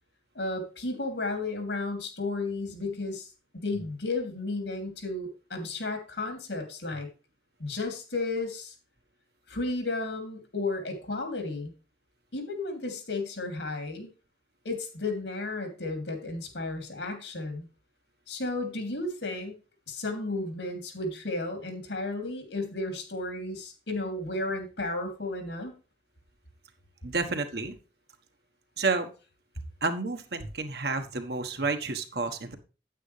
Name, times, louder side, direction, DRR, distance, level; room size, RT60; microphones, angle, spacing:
voice 1, 0.3-3.3 3.5-7.1 7.6-8.7 9.5-11.7 12.3-14.1 14.6-17.7 18.3-19.5 19.9-25.7, left 2 dB, 80° left, 5 dB, 2.9 m, -33 dB
voice 2, 27.0-27.7 28.8-29.1 29.8-32.6, right 3 dB, 60° right, 6 dB, 1.3 m, -30 dB
9.1 x 9.0 x 3.3 m, 0.33 s
head